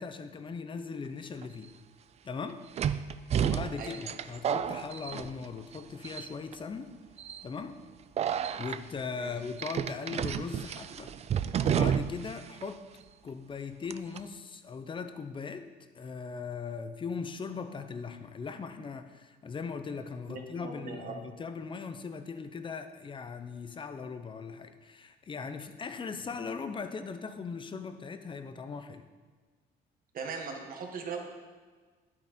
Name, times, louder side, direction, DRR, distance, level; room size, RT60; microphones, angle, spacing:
voice 1, 0.0-1.7 2.2-2.6 3.4-6.9 7.4-7.8 8.6-11.1 11.6-12.8 13.2-15.7 15.9-29.1, left 5 dB, 30° left, 9 dB, 0.8 m, -39 dB
sound 1, 1.4-1.5 2.8-5.8 6.0-6.5 7.2-7.4 8.2-8.8 9.6-12.3 12.6-12.7 13.9-14.2, right 9 dB, 40° right, 0.4 m, -31 dB
voice 2, 20.3-21.2 26.1-26.2 30.1-31.2, right 5 dB, 55° right, 3 dB, 1.7 m, -40 dB
10.5 x 8.7 x 4.3 m, 1.4 s
cardioid pair, 110°, 17 cm